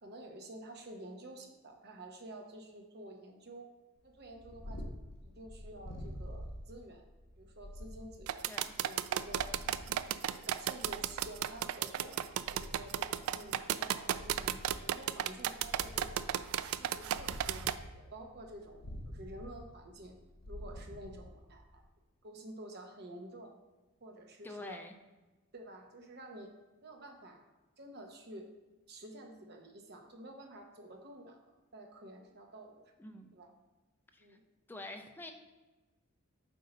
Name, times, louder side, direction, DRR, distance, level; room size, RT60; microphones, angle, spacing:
voice 1, 0.0-3.7 4.0-4.9 5.2-7.0 7.4-8.5 8.8-9.5 9.9-12.2 12.5-16.3 16.6-17.7 17.9-20.1 20.5-21.8 22.2-23.5 24.0-24.8 25.5-26.5 26.8-27.4 27.8-28.5 28.9-31.4 31.7-32.8 33.3-33.5 34.2-34.4, right 1 dB, 50° right, 3 dB, 0.9 m, -50 dB
Purr, 4.1-21.8, equal, 75° left, 1.0 m, -48 dB
sound 1, 8.3-17.8, right 11 dB, 85° right, 0.3 m, -34 dB
voice 2, 24.4-24.9 33.0-33.3 34.1-34.2 34.7-35.3, left 2 dB, 10° left, 5 dB, 0.5 m, -46 dB
8.0 x 2.7 x 5.3 m, 1.2 s
head